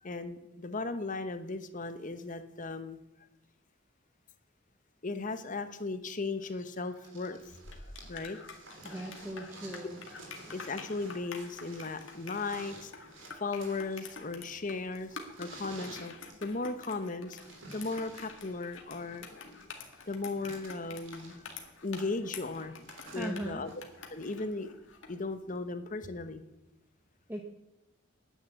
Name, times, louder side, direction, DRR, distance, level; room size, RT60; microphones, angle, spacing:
voice 1, 0.0-3.0 5.0-7.5 8.1-8.4 10.5-12.9 13.3-17.4 17.7-19.6 20.1-21.5 21.8-23.7 24.1-24.7 25.1-26.4, left 3 dB, 40° left, 10 dB, 1.0 m, -37 dB
sound 1, 6.4-24.5 25.6-25.7, right 2 dB, 70° right, 3.2 m, -52 dB
sound 2, 7.4-25.2, left 5 dB, 70° left, 2.1 m, -48 dB
voice 2, 8.8-10.0 23.1-23.7 27.3-27.4, right 1 dB, 10° right, 2 dB, 1.0 m, -39 dB
9.7 x 9.6 x 8.1 m, 0.94 s
head